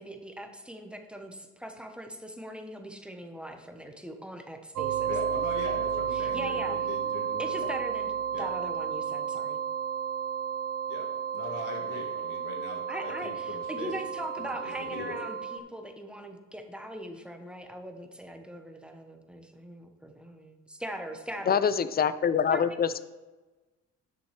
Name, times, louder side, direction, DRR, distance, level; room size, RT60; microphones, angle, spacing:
voice 1, 0.0-5.1 6.1-6.8 7.4-8.1 8.4-9.6 12.9-21.6 22.5-22.6, equal, 5° right, 4 dB, 1.0 m, -40 dB
sound 1, 4.8-15.6, right 8 dB, 90° right, 0.6 m, -32 dB
voice 2, 5.1-7.8 8.3-8.5 10.9-11.1 11.3-15.2, left 4 dB, 80° left, 1 dB, 1.8 m, -40 dB
voice 3, 21.5-22.9, left 7 dB, 30° left, 14 dB, 0.5 m, -25 dB
11.0 x 6.2 x 3.3 m, 1.2 s
cardioid pair, 90°, 30 cm